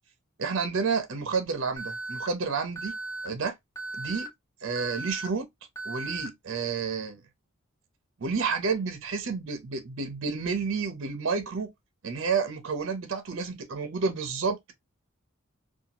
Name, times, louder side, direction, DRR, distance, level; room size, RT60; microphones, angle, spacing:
voice 1, 0.4-3.0 3.2-3.5 4.0-4.3 4.6-5.5 5.8-7.2 8.2-11.7 12.0-14.7, right 5 dB, 60° right, 0.5 m, -30 dB
Alarm, 1.8-2.3 2.8-3.3 3.8-4.3 4.8-5.3 5.8-6.3, right 3 dB, 15° left, 0.7 m, -36 dB
2.7 x 2.2 x 2.7 m
head